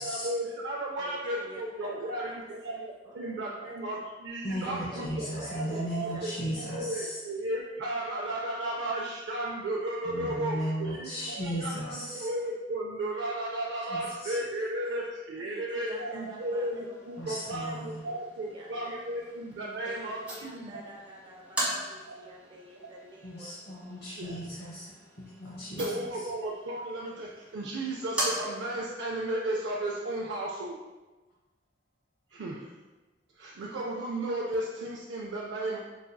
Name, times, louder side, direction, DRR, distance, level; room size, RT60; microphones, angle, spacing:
voice 1, 0.0-20.8 22.1-22.2 22.8-22.9 24.1-24.4 25.8-30.8 32.3-32.7 33.4-35.8, right 1 dB, 75° right, -3 dB, 0.4 m, -34 dB
voice 2, 1.0-1.6 2.0-2.4 3.0-4.0 4.6-6.3 15.4-19.0 19.8-23.5 23.8-24.4, right 1 dB, 25° right, -2 dB, 0.6 m, -50 dB
voice 3, 4.4-7.2 10.0-12.3 13.9-14.4 17.2-18.0 23.2-24.9 25.2-25.8, equal, 65° left, -7 dB, 0.8 m, -36 dB
sound 1, 15.9-28.9, right 1 dB, 5° right, 1.0 m, -40 dB
4.7 x 2.7 x 2.2 m, 1.2 s
head